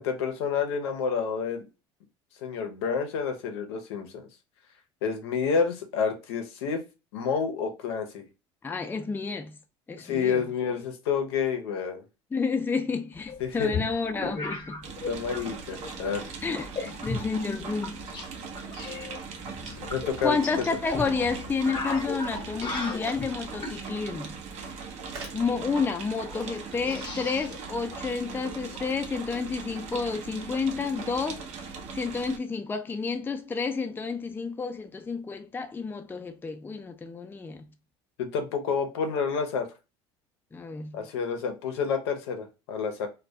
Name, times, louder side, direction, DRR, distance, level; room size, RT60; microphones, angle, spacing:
voice 1, 0.0-1.7 2.4-4.1 5.0-6.8 7.1-8.3 10.0-12.0 13.4-13.8 15.1-16.3 19.8-20.4 38.2-39.7 40.9-43.1, left 6 dB, 80° left, 0.6 m, -29 dB
voice 2, 8.6-9.6 9.9-10.5 12.3-14.9 16.4-18.0 20.2-24.3 25.3-31.4 31.9-37.7 40.5-41.0, left 4 dB, 15° left, 0.4 m, -30 dB
sound 1, 13.2-15.4 15.7-16.2 16.7-18.3 18.6-23.8 25.5-25.6 25.8-25.9 26.3-28.8, left 3 dB, 35° left, 0.8 m, -36 dB
sound 2, 14.8-32.4, right 5 dB, 60° right, 0.6 m, -40 dB
sound 3, 20.9-21.0 21.4-21.5 21.7-23.3 23.9-24.0 24.2-25.5 25.9-26.0, right 3 dB, 75° right, 0.9 m, -47 dB
2.2 x 2.1 x 2.6 m
hypercardioid pair, 75°, 14 cm